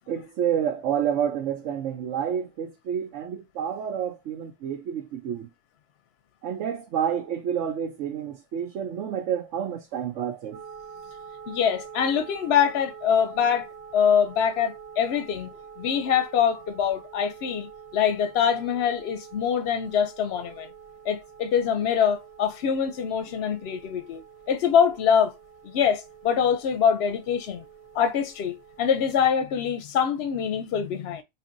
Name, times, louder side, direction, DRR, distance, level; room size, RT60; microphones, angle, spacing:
voice 1, 0.1-5.5 6.4-10.6, right 9 dB, 80° right, 1.0 m, -29 dB
sound 1, 10.5-29.1, right 7 dB, 40° right, 0.8 m, -46 dB
voice 2, 11.5-13.7 13.9-20.7 21.1-24.2 24.5-25.3 25.6-27.6 27.9-31.2, left 7 dB, 65° left, 0.7 m, -24 dB
4.3 x 2.9 x 2.6 m
omnidirectional pair, 1.3 m